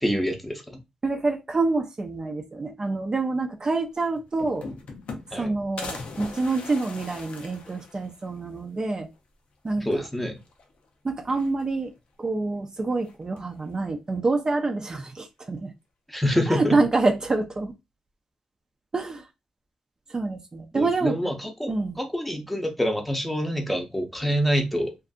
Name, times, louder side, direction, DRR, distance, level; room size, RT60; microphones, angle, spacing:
voice 1, 0.0-0.8 5.3-5.6 9.8-10.4 16.1-16.8 20.7-24.9, equal, 5° left, 0.7 m, -26 dB
voice 2, 1.0-4.7 5.3-9.1 9.6-10.0 11.0-11.9 12.2-15.7 16.5-17.7 18.9-19.3 20.1-21.2 21.7-22.0, right 3 dB, 35° right, 0.5 m, -27 dB
sound 1, 3.8-3.9 4.1-5.5 5.8-8.4 8.8-8.9 9.1-9.2 10.4-10.9 11.2-12.0 13.0-13.6, left 3 dB, 75° left, 0.6 m, -40 dB
2.6 x 2.4 x 2.3 m
cardioid pair, 80°, 2 cm